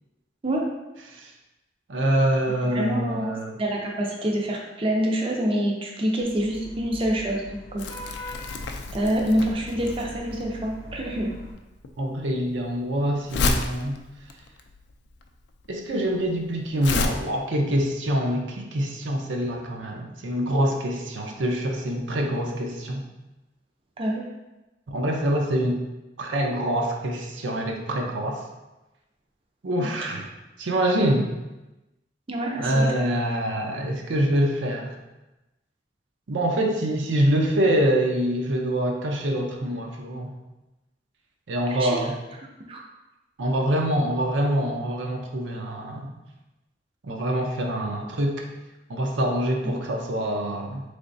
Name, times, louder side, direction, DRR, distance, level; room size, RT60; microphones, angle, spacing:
voice 1, 1.9-3.6 12.0-14.0 15.7-23.0 24.9-25.8 26.2-28.4 29.6-30.3 30.6-31.3 32.6-35.0 36.3-40.3 41.5-42.2 43.4-46.1 47.0-48.4 48.9-50.8, right 1 dB, 80° right, 1 dB, 0.6 m, -25 dB
voice 2, 2.7-7.9 8.9-11.4 24.0-24.3 29.8-29.9 32.3-32.9 41.8-42.0 42.7-42.8, right 1 dB, 30° right, -1 dB, 0.4 m, -26 dB
Vehicle horn car horn honking / Traffic noise roadway noise, 6.2-11.5, left 1 dB, 25° left, 0.7 m, -41 dB
Crumpling crinkling, 7.8-17.1, left 3 dB, 65° left, 0.4 m, -31 dB
3.8 x 3.3 x 2.6 m, 1.0 s
head